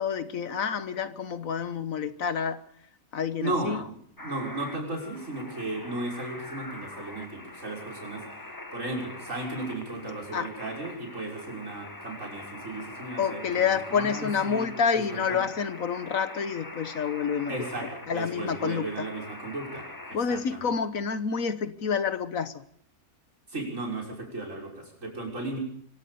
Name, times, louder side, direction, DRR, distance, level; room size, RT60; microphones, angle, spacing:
voice 1, 0.0-2.6 3.1-3.8 10.3-10.5 13.2-17.6 18.1-19.1 20.1-22.6, left 6 dB, 75° left, 12 dB, 1.6 m, -28 dB
voice 2, 3.4-3.9 4.2-8.4 8.7-15.4 17.5-20.8 23.5-25.6, right 2 dB, 60° right, 1 dB, 6.6 m, -35 dB
sound 1, 4.2-20.2, left 2 dB, 15° left, 1.3 m, -43 dB
25.0 x 16.5 x 7.0 m, 0.63 s
omnidirectional pair, 1.5 m